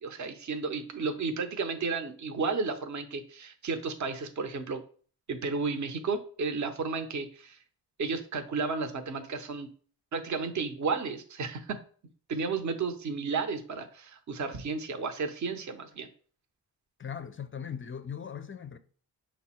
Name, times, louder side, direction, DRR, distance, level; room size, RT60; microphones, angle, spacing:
voice 1, 0.0-4.8 5.3-7.6 8.0-9.7 10.1-11.8 12.3-16.1, right 4 dB, 40° right, 0.7 m, -33 dB
voice 2, 17.0-18.8, left 7 dB, 30° left, 0.4 m, -39 dB
5.3 x 2.0 x 4.3 m
supercardioid pair, 45°, 47 cm